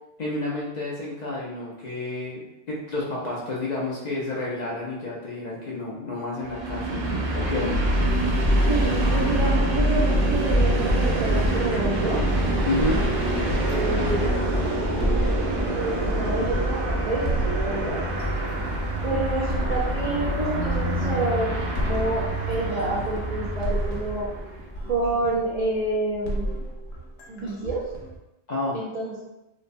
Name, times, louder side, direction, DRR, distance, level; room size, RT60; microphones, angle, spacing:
voice 1, 0.2-7.8 12.6-13.0 28.5-28.8, left 2 dB, 50° left, -5 dB, 0.5 m, -30 dB
Train, 6.4-24.5, right 1 dB, 70° right, 0.8 m, -28 dB
sound 1, 7.7-25.3, equal, 30° left, 0.8 m, -28 dB
voice 2, 8.7-12.2 13.6-14.3 15.6-18.1 19.0-24.3 24.8-26.5 27.3-27.9 28.7-29.2, right 2 dB, 55° right, -7 dB, 0.4 m, -28 dB
sound 2, 12.8-28.2, right 1 dB, 80° left, 0.9 m, -34 dB
3.0 x 2.1 x 2.5 m, 0.93 s
omnidirectional pair, 1.1 m